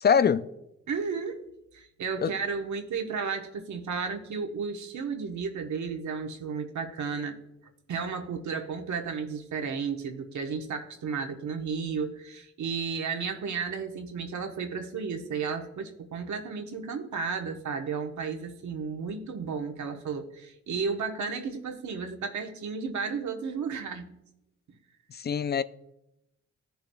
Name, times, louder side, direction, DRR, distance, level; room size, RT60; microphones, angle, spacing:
voice 1, 0.0-0.5 2.2-2.3 25.2-25.6, left 7 dB, 35° left, 0.4 m, -23 dB
voice 2, 0.9-1.4 1.7-7.4 7.9-24.1, right 5 dB, 70° right, 1.2 m, -33 dB
15.5 x 6.9 x 2.3 m
cardioid pair, 65°, 30 cm